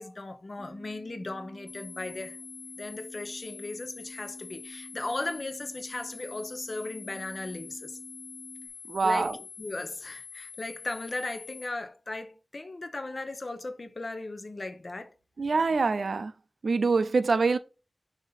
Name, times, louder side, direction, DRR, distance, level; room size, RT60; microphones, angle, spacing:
voice 1, 0.0-2.4 2.8-8.0 9.0-15.1, left 2 dB, 55° left, 0.8 m, -37 dB
sound 1, 0.6-8.7, right 1 dB, 30° right, 1.5 m, -49 dB
sound 2, 1.7-11.7, left 6 dB, 75° left, 1.4 m, -46 dB
voice 2, 8.9-9.3 15.4-16.3 16.6-17.6, right 4 dB, 85° right, 0.4 m, -25 dB
6.6 x 2.8 x 5.6 m
wide cardioid pair, 60°, 0 cm